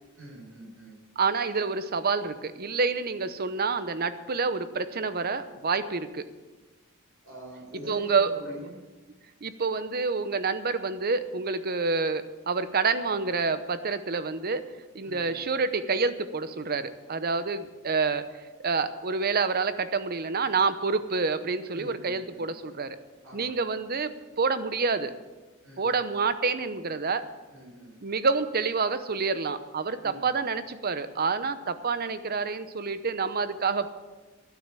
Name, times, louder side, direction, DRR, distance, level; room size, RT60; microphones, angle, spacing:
voice 1, 0.2-0.9 7.2-8.7 15.0-15.4 21.7-22.5 23.2-23.6 25.6-26.0 27.5-27.9 30.0-30.4, equal, 70° right, -3 dB, 5.9 m, -45 dB
voice 2, 1.2-6.2 7.9-8.3 9.4-14.7 14.9-18.2 18.6-23.0 23.3-25.1 25.8-27.2 28.0-33.9, right 4 dB, 45° right, 12 dB, 0.8 m, -28 dB
12.0 x 9.7 x 7.5 m, 1.2 s
head